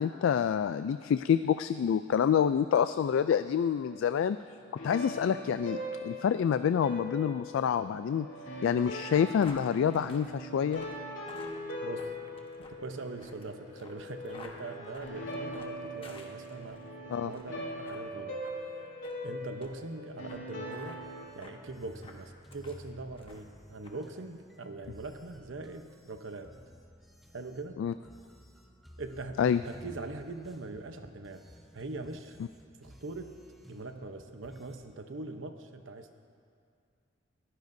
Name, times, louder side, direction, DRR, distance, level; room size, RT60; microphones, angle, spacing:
voice 1, 0.0-4.4 4.8-8.3 8.6-10.8 17.1-17.3 27.8-27.9 29.4-29.6, left 8 dB, 85° left, 12 dB, 0.3 m, -27 dB
sound 1, 3.8-21.3, equal, 70° left, 3.2 m, -41 dB
sound 2, 8.6-16.8 17.2-17.5 17.8-18.0 18.4-18.6 19.0-19.2 19.6-19.7 20.3-20.4 20.7-21.0 21.4-21.6 22.0-22.8 23.2-23.5 23.8-24.0, left 2 dB, 30° left, 1.2 m, -52 dB
voice 2, 11.8-12.1 12.6-18.4 18.7-18.9 19.2-21.0 21.3-26.6 27.3-27.8 29.0-31.4 31.7-32.4 32.8-33.4 33.7-36.1, right 2 dB, 85° right, 7 dB, 0.9 m, -42 dB
sound 3, 21.0-34.8, equal, ahead, 0.9 m, -54 dB
21.0 x 15.5 x 2.7 m, 2.3 s
head